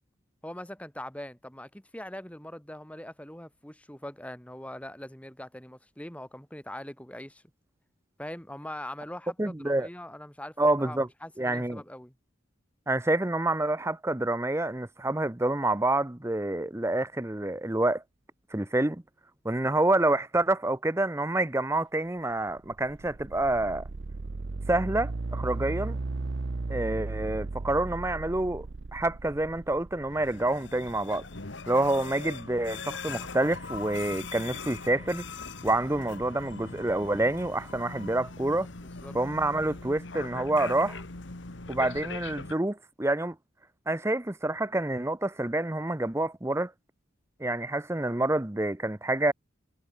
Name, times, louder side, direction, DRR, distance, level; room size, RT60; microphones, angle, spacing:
voice 1, 0.4-7.4 8.2-12.1 38.8-39.2, left 1 dB, 5° left, 2.0 m, -42 dB
voice 2, 9.4-9.9 10.6-11.1 11.4-11.8 12.9-18.0 18.5-19.0 19.4-23.9 24.7-26.0 26.7-28.7 28.9-31.2 31.7-35.2 35.6-38.7 39.1-41.0 41.7-43.4 43.9-46.7 47.4-49.3, right 2 dB, 15° right, 0.7 m, -27 dB
sound 1, 22.3-30.3, right 3 dB, 60° right, 0.7 m, -36 dB
sound 2, 30.1-42.5, left 4 dB, 65° left, 1.7 m, -41 dB
head